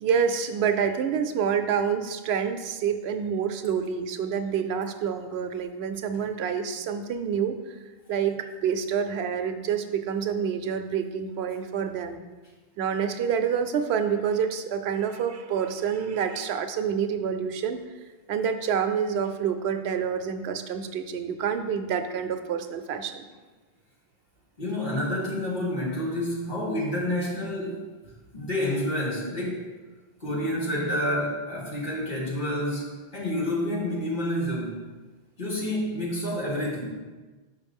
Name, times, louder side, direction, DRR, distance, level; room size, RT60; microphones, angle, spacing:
voice 1, 0.0-7.7 8.1-12.2 12.8-17.8 18.3-23.3, right 7 dB, 90° right, 8 dB, 0.9 m, -27 dB
voice 2, 24.6-27.8 28.3-29.6 30.2-34.8 35.4-36.9, left 1 dB, 50° left, -4 dB, 2.0 m, -29 dB
5.9 x 5.5 x 5.3 m, 1.3 s
omnidirectional pair, 1.1 m